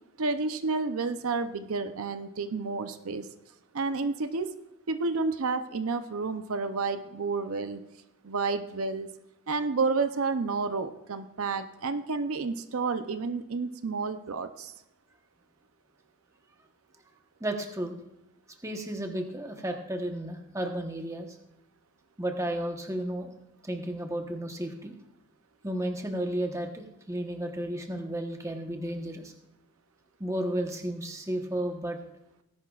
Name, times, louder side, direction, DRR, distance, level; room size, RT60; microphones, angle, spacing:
voice 1, 0.2-3.3 3.7-4.5 4.9-7.8 8.2-9.1 9.5-14.7, right 4 dB, 75° right, 9 dB, 0.7 m, -30 dB
voice 2, 17.4-17.9 18.6-21.4 22.2-23.3 23.6-24.9 25.6-29.3 30.2-32.0, right 1 dB, 15° right, 3 dB, 1.1 m, -33 dB
19.5 x 11.0 x 2.4 m, 0.87 s
head